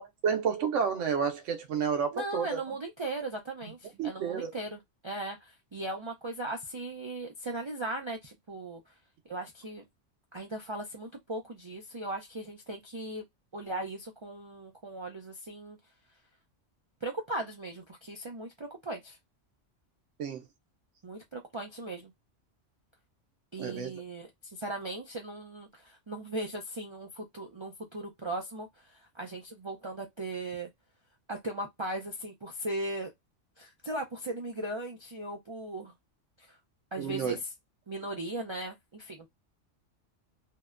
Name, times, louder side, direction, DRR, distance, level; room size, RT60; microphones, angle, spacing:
voice 1, 0.2-2.6 4.0-4.5 20.2-20.4 23.6-23.9 37.0-37.4, right 6 dB, 90° right, 0.9 m, -30 dB
voice 2, 2.1-9.0 9.2-9.8 10.3-13.2 13.5-15.8 17.0-19.2 21.0-22.1 23.5-30.7 31.3-33.1 33.6-35.9 36.4-36.6 36.9-37.4 37.9-39.3, right 2 dB, 45° right, 0.3 m, -38 dB
2.7 x 2.1 x 2.3 m
omnidirectional pair, 1.2 m